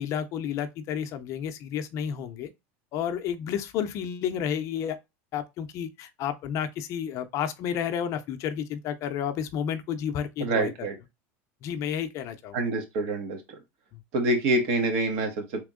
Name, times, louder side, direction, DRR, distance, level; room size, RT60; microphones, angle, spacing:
voice 1, 0.0-2.5 2.9-5.0 5.3-10.9 11.6-12.6 13.9-14.0, left 8 dB, 45° left, 0.5 m, -31 dB
voice 2, 10.4-10.9 12.5-13.4 14.1-15.6, right 2 dB, 65° right, 1.4 m, -26 dB
3.5 x 3.0 x 3.7 m
supercardioid pair, 140°, 7 cm